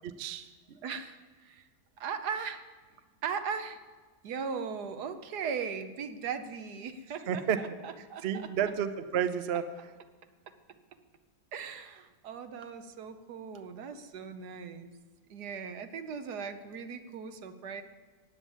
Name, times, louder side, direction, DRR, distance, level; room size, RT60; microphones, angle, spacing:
voice 1, 0.0-0.8 7.3-7.6 8.2-9.7, right 8 dB, 50° right, 11 dB, 0.8 m, -31 dB
voice 2, 0.8-1.7 2.0-2.6 3.2-3.8 4.2-8.5 11.5-14.9 15.3-17.8, right 6 dB, 75° right, 9 dB, 1.5 m, -38 dB
15.5 x 9.5 x 7.3 m, 1.4 s
omnidirectional pair, 1.8 m